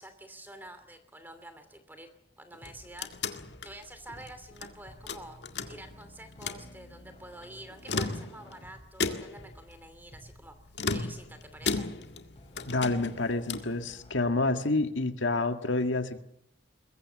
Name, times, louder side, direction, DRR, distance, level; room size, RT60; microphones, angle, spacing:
voice 1, 0.0-2.1 2.4-3.1 3.6-5.4 5.7-10.6 10.9-11.9, right 1 dB, 10° right, 9 dB, 2.8 m, -48 dB
sound 1, 2.5-4.7 5.1-6.0 6.3-6.7 7.7-8.6 9.0-9.5 10.7-12.3 12.6-13.8, left 4 dB, 65° left, 1.9 m, -34 dB
sound 2, 2.6-14.6, equal, 30° left, 6.9 m, -53 dB
voice 2, 12.7-16.2, left 2 dB, 90° left, 7 dB, 1.9 m, -28 dB
22.0 x 22.0 x 7.4 m, 0.73 s
head